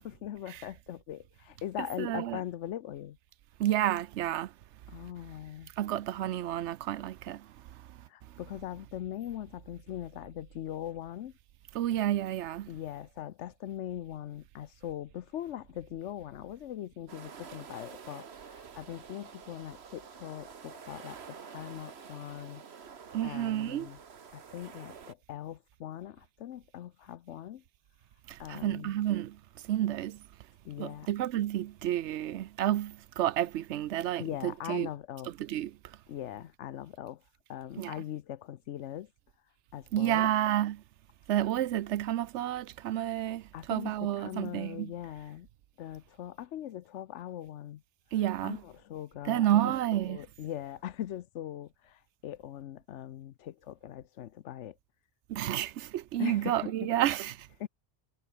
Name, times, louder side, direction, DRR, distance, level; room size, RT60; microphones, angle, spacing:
voice 1, 0.0-3.2 4.9-5.7 8.1-11.3 12.7-22.6 23.2-24.0 24.3-27.6 28.4-28.9 30.6-31.1 34.2-35.3 36.1-37.2 37.5-39.1 39.7-40.3 43.5-45.5 45.8-47.8 48.4-49.7 50.0-54.8 56.2-56.9 57.6-57.7, left 11 dB, 85° left, 1.0 m, -41 dB
voice 2, 2.0-2.4 3.6-4.5 5.8-7.5 11.7-12.7 23.1-23.9 28.3-29.4 29.6-30.2 30.8-34.9 35.4-35.7 37.8-37.9 39.9-40.8 41.3-44.9 48.1-48.6 49.2-50.2 55.3-57.5, right 12 dB, 85° right, 0.9 m, -30 dB
sound 1, 17.1-25.1, right 6 dB, 65° right, 1.5 m, -49 dB
omnidirectional pair, 1.2 m